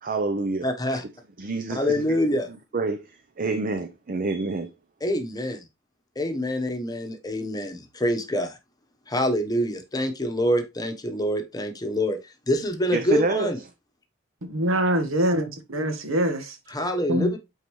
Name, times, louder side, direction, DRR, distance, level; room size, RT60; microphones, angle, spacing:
voice 1, 0.0-0.7 1.4-2.0 2.7-4.7 12.9-13.5, right 3 dB, 45° right, 0.6 m, -27 dB
voice 2, 0.6-1.0 1.7-2.5 5.0-5.6 6.2-8.6 9.1-12.2 12.5-13.6 16.7-17.4, equal, 20° left, 1.0 m, -26 dB
voice 3, 14.5-16.6 17.1-17.3, right 1 dB, 80° right, 1.4 m, -24 dB
8.8 x 4.0 x 3.1 m
head